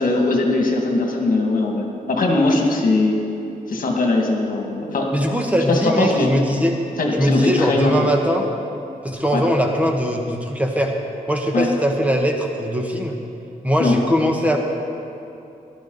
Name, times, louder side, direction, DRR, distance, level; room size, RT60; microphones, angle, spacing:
voice 1, 0.0-3.2 3.7-5.1 5.7-6.3 7.0-7.9 9.3-9.4 11.5-11.7 13.8-14.0, left 2 dB, 65° left, 0 dB, 2.1 m, -20 dB
voice 2, 5.1-6.8 7.2-8.4 9.0-10.9 11.3-13.2 13.6-14.6, equal, 10° right, 1 dB, 1.2 m, -20 dB
17.5 x 13.0 x 4.0 m, 2.8 s
wide cardioid pair, 120°, 15 cm